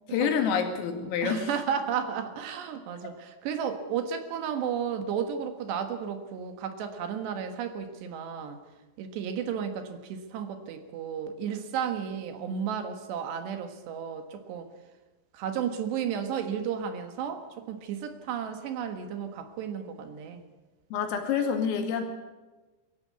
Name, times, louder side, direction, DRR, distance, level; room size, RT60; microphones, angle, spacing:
voice 1, 0.1-1.5 20.9-22.0, left 7 dB, 85° left, 4 dB, 4.9 m, -27 dB
voice 2, 1.0-8.6 9.0-14.7 15.3-20.4, right 8 dB, 65° right, 7 dB, 3.4 m, -33 dB
23.0 x 14.5 x 8.5 m, 1.2 s
omnidirectional pair, 5.8 m